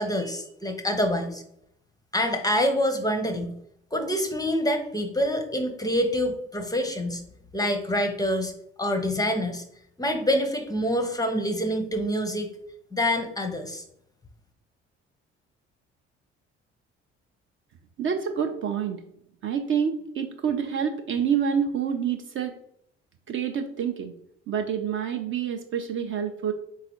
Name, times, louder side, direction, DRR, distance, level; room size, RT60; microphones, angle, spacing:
voice 1, 0.0-1.4 2.1-3.6 3.9-7.2 7.5-8.5 8.8-9.6 10.0-12.5 12.9-13.8, equal, 10° left, 7 dB, 0.6 m, -26 dB
voice 2, 18.0-19.0 19.4-22.5 23.3-24.1 24.5-26.5, right 7 dB, 35° right, 5 dB, 0.4 m, -27 dB
3.8 x 3.7 x 2.9 m, 0.74 s
figure-of-eight pair, 50°, 34 cm